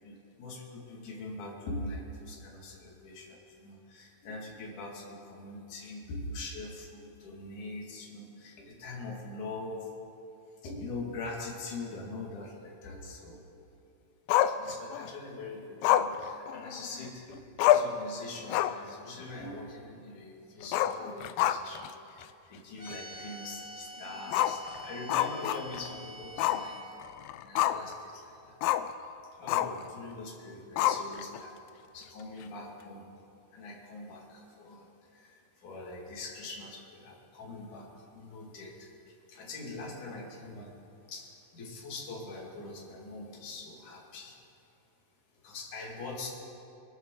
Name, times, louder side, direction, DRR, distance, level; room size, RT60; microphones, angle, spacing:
voice 1, 0.0-9.9 10.6-13.4 14.5-17.4 17.7-26.8 27.4-28.6 29.4-31.5 31.9-33.1 33.5-34.9 35.1-38.9 39.3-40.7 41.1-44.4 45.4-46.3, left 2 dB, 65° left, -2 dB, 3.6 m, -43 dB
Growling, 14.3-15.1 15.8-17.1 17.3-17.4 17.6-18.0 18.4-18.9 19.2-19.3 20.6-21.9 22.2-22.3 22.9-23.0 24.3-25.9 26.4-26.7 27.0-27.9 28.6-28.9 29.5-29.8 30.8-31.4, left 12 dB, 90° left, 2.3 m, -27 dB
sound 1, 22.8-26.8, right 1 dB, 15° right, 2.6 m, -46 dB
23.5 x 12.5 x 3.9 m, 2.7 s
omnidirectional pair, 3.9 m